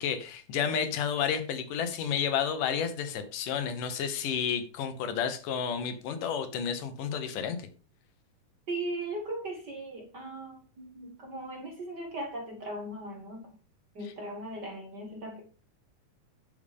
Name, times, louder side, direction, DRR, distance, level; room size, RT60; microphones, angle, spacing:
voice 1, 0.0-7.7, left 7 dB, 85° left, 8 dB, 2.8 m, -31 dB
voice 2, 8.7-13.5 13.9-15.4, right 1 dB, 40° right, 2 dB, 1.9 m, -38 dB
10.5 x 6.8 x 3.6 m, 0.37 s
omnidirectional pair, 3.6 m